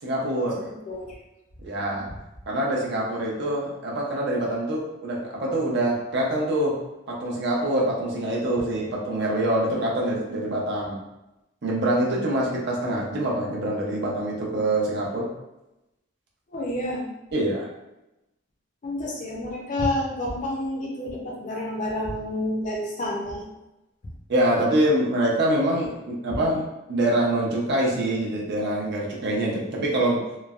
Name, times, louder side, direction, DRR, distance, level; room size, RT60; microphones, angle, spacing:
voice 1, 0.0-0.6 1.6-2.1 2.5-6.8 7.1-11.0 11.6-15.3 17.3-17.7 24.3-26.6 26.9-30.2, right 1 dB, 60° right, -3 dB, 0.6 m, -25 dB
voice 2, 0.6-1.1 16.5-17.0 18.8-23.4, left 1 dB, 40° left, -1 dB, 0.5 m, -29 dB
3.1 x 2.1 x 2.4 m, 0.94 s
head